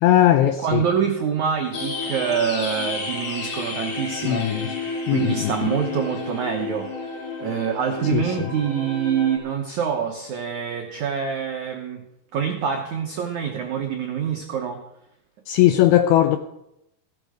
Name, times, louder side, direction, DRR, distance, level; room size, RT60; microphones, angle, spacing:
voice 1, 0.0-0.8 4.2-4.7 5.1-5.7 8.1-8.5 15.5-16.4, left 12 dB, 80° left, 2.2 m, -19 dB
voice 2, 0.6-4.5 5.1-6.9 7.4-12.0 12.3-14.8, right 8 dB, 85° right, 1.6 m, -25 dB
sound 1, 1.7-9.4, left 4 dB, 45° left, 3.4 m, -31 dB
15.5 x 13.0 x 5.1 m
omnidirectional pair, 5.1 m